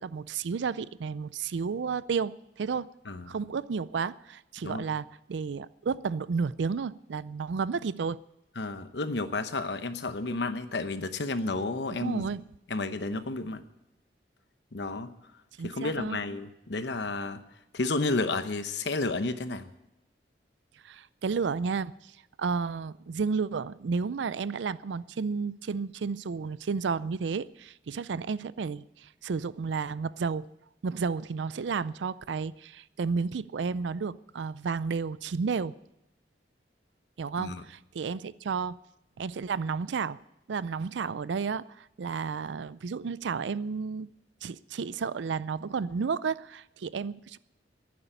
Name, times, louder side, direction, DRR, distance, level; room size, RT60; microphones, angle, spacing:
voice 1, 0.0-2.9 3.3-8.2 12.0-12.4 15.6-16.2 20.8-21.9 22.4-30.5 30.8-35.8 37.2-38.8 39.2-40.2 40.5-44.1 44.4-47.4, right 5 dB, 85° right, 0.4 m, -32 dB
voice 2, 3.0-3.4 4.6-4.8 8.6-12.2 12.7-13.6 14.7-15.1 15.6-17.4 17.7-19.7 37.4-37.6, left 3 dB, 75° left, 0.9 m, -31 dB
11.0 x 9.5 x 9.9 m
head